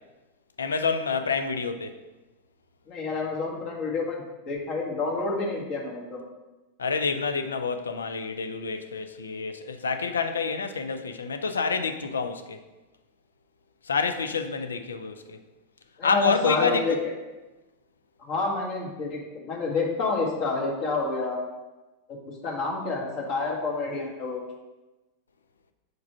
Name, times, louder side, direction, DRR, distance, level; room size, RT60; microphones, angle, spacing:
voice 1, 0.6-1.9 6.8-12.6 13.8-15.4 16.0-17.0, left 5 dB, 70° left, 0.5 m, -28 dB
voice 2, 2.9-6.2 16.0-17.0 18.2-21.4 22.4-24.4, left 3 dB, 40° left, 1.7 m, -28 dB
4.8 x 4.7 x 5.9 m
figure-of-eight pair, 90°, 0 cm